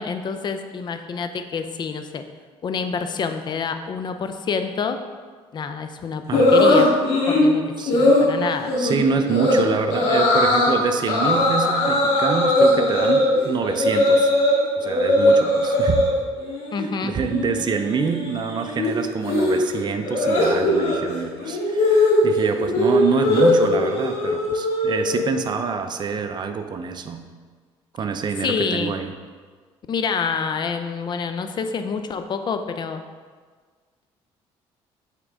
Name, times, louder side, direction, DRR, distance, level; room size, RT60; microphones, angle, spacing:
voice 1, 0.0-2.2 2.6-5.0 5.5-6.9 7.3-7.6 7.9-8.7 16.7-17.1 28.4-28.9 29.9-33.0, left 5 dB, 45° left, 8 dB, 0.5 m, -27 dB
sound 1, 6.3-7.5 7.9-8.2 8.7-9.0 9.3-9.6 9.9-10.7 11.1-14.5 14.8-16.1 16.4-16.9 17.1-25.3, left 1 dB, 80° left, 1.8 m, -19 dB
voice 2, 8.8-14.3 14.8-16.0 17.0-27.2 27.9-29.1, right 5 dB, 45° right, 7 dB, 0.6 m, -26 dB
8.2 x 3.8 x 3.6 m, 1.5 s
cardioid pair, 90°, 11 cm